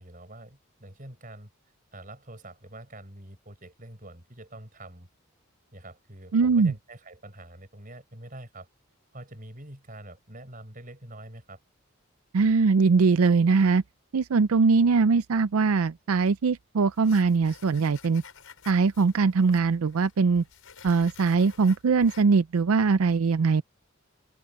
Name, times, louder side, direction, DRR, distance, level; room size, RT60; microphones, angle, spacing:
voice 1, 0.0-1.5 1.9-5.1 5.7-8.7 9.1-11.6, right 1 dB, 40° right, 6.7 m, -45 dB
voice 2, 6.3-6.7 12.3-13.8 14.1-18.2 18.7-20.4 20.8-23.6, right 4 dB, 90° right, 0.5 m, -21 dB
sound 1, 16.9-22.2, left 6 dB, 85° left, 5.6 m, -51 dB
open air
head